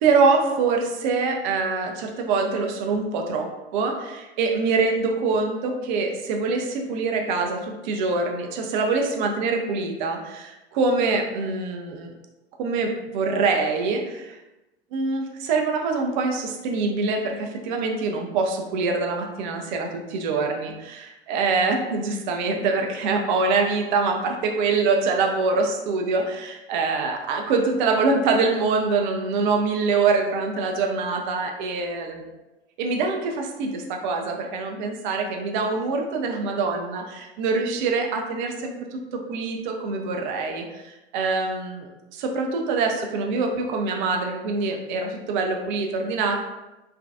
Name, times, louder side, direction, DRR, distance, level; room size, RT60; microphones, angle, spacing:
voice 1, 0.0-12.1 12.6-14.4 14.9-32.3 32.8-46.4, right 4 dB, 50° right, 2 dB, 0.6 m, -24 dB
3.3 x 2.2 x 2.6 m, 1.0 s
figure-of-eight pair, 80°, 31 cm